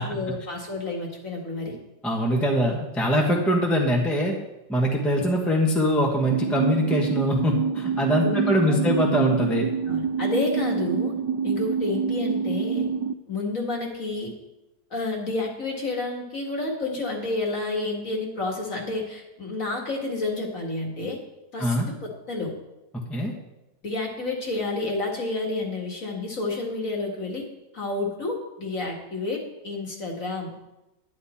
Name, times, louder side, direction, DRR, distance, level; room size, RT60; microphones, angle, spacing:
voice 1, 0.0-1.8 8.2-9.0 9.8-11.1 11.4-12.9 13.3-14.3 14.9-21.2 21.5-22.5 23.8-27.4 27.7-30.5, left 2 dB, 45° left, 0 dB, 2.2 m, -30 dB
voice 2, 2.0-4.3 4.7-9.7 21.6-21.9 23.1-23.3, equal, ahead, 0 dB, 1.2 m, -23 dB
sound 1, 6.3-13.1, right 6 dB, 75° right, 1.1 m, -26 dB
11.0 x 10.5 x 4.3 m, 0.96 s
omnidirectional pair, 2.0 m